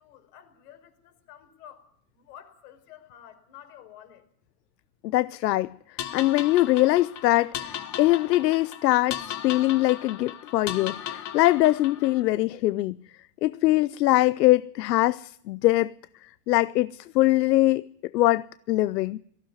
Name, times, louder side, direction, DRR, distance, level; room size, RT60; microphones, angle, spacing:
voice 1, 0.0-1.9 2.1-4.2, left 10 dB, 65° left, 5.2 m, -50 dB
voice 2, 5.0-5.7 6.1-13.0 13.4-15.9 16.2-19.2, left 17 dB, 90° left, 0.7 m, -23 dB
sound 1, 6.0-12.2, left 10 dB, 35° left, 1.9 m, -37 dB
18.0 x 15.5 x 9.6 m
supercardioid pair, 125°, 48 cm